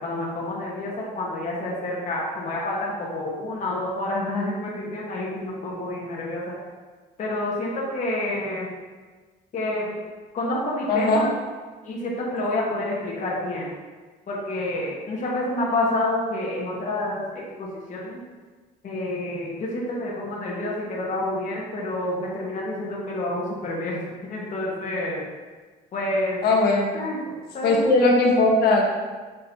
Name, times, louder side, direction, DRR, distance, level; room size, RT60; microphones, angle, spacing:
voice 1, 0.0-6.5 7.2-8.7 9.5-9.9 10.3-11.3 11.8-13.7 14.3-17.2 17.6-18.2 18.8-25.2 25.9-26.4 26.9-27.2 27.5-27.8, left 1 dB, 50° left, -4 dB, 1.5 m, -28 dB
voice 2, 10.9-11.3 26.4-26.9 27.6-28.8, left 2 dB, 70° left, 0 dB, 1.3 m, -19 dB
6.4 x 5.3 x 2.8 m, 1.4 s
cardioid pair, 110°, 17 cm